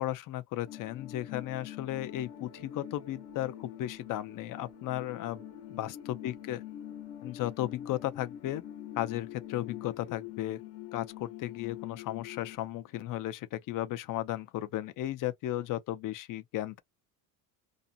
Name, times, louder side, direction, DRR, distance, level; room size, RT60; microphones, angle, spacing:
voice 1, 0.0-5.4 5.7-6.6 7.2-8.6 9.0-10.6 10.9-16.8, left 14 dB, 45° left, 0.5 m, -35 dB
sound 1, 0.7-12.6, left 11 dB, 70° left, 1.2 m, -45 dB
2.5 x 2.1 x 2.6 m
cardioid pair, 115°, 44 cm